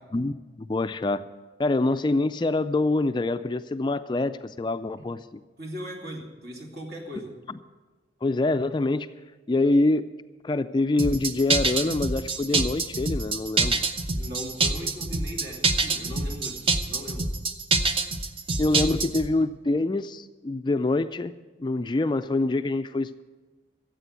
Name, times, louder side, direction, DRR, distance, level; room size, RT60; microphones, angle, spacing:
voice 1, 0.1-1.2 1.6-5.2 7.5-7.6 8.2-9.1 9.5-10.1 10.4-13.8 18.6-21.3 21.6-23.2, left 2 dB, 25° left, 11 dB, 0.3 m, -25 dB
voice 2, 5.6-7.3 14.2-17.3, equal, 60° right, 0 dB, 2.8 m, -38 dB
sound 1, 11.0-19.3, right 3 dB, 30° right, 0.8 m, -25 dB
14.0 x 8.2 x 8.2 m, 1.3 s
head